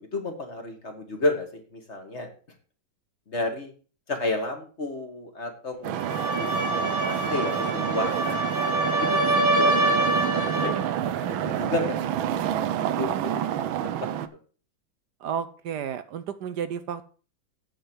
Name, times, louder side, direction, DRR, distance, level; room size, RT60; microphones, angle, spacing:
voice 1, 0.1-2.3 3.3-3.7 4.1-8.4 9.0-9.7 10.3-10.8 11.0-12.0 12.8-13.4 14.2-14.3, left 2 dB, 35° left, 4 dB, 2.0 m, -32 dB
sound 1, 5.8-14.3, right 10 dB, 80° right, 1.5 m, -28 dB
sound 2, 5.9-10.9, right 1 dB, 35° right, 1.1 m, -26 dB
voice 2, 15.2-17.0, right 8 dB, 65° right, 12 dB, 1.1 m, -32 dB
9.0 x 5.1 x 7.9 m, 0.39 s
omnidirectional pair, 2.2 m